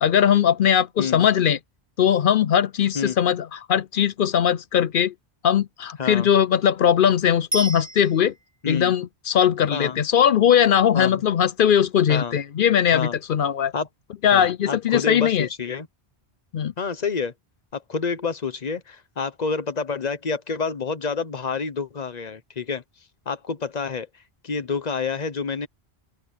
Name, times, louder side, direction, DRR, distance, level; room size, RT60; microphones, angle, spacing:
voice 1, 0.0-1.6 2.0-5.1 5.4-8.3 8.7-13.7 14.2-15.5 16.5-16.7, left 9 dB, 60° left, 0.7 m, -20 dB
Bicycle bell, 7.5-8.6 17.7-17.8, right 1 dB, 15° right, 8.2 m, -32 dB
voice 2, 8.6-8.9 9.7-10.0 10.9-11.2 12.1-12.4 12.9-13.1 13.7-13.9 14.3-15.9 16.8-17.3 17.7-22.8 23.3-24.1 24.4-25.7, left 5 dB, 40° left, 1.1 m, -28 dB
open air
omnidirectional pair, 1.1 m